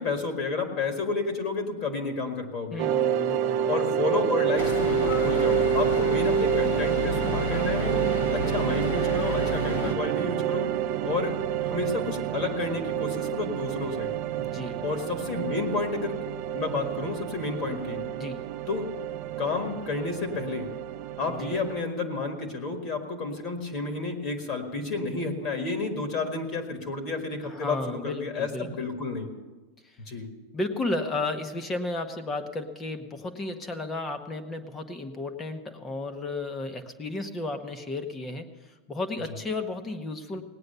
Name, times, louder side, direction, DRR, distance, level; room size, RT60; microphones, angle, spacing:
voice 1, 0.0-2.8 3.7-8.0 8.3-10.7 11.0-11.3 11.6-14.1 14.8-16.2 16.5-18.0 18.7-18.9 19.4-20.7 21.2-29.3 30.0-30.3, left 3 dB, 30° left, 4 dB, 1.6 m, -31 dB
voice 2, 2.7-3.6 9.7-9.9 14.4-14.8 18.2-18.4 21.3-21.6 27.4-28.7 29.8-30.0 30.5-40.4, left 2 dB, 15° left, 8 dB, 1.0 m, -33 dB
sound 1, 2.8-21.8, right 9 dB, 40° right, 0.8 m, -28 dB
sound 2, 4.6-9.9, left 3 dB, 70° left, 3.1 m, -32 dB
18.0 x 9.5 x 6.8 m, 1.2 s
supercardioid pair, 175°, 0 cm